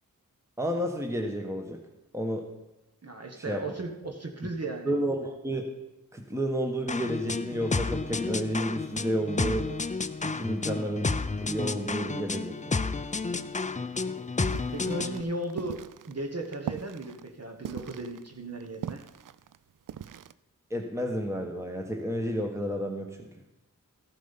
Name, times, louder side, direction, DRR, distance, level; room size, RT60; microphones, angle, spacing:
voice 1, 0.6-1.8 2.1-2.4 3.4-3.6 4.8-5.7 6.1-9.7 10.2-11.1 11.4-12.8 20.7-23.3, equal, 10° right, 3 dB, 1.2 m, -31 dB
voice 2, 3.0-4.9 14.0-14.1 14.7-15.8 16.1-19.0, right 2 dB, 45° right, 3 dB, 1.2 m, -36 dB
sound 1, 6.9-15.2, left 4 dB, 20° left, 0.5 m, -31 dB
sound 2, 14.4-20.3, right 9 dB, 65° right, 0.5 m, -41 dB
14.0 x 7.2 x 5.7 m, 0.96 s
wide cardioid pair, 65°, 35 cm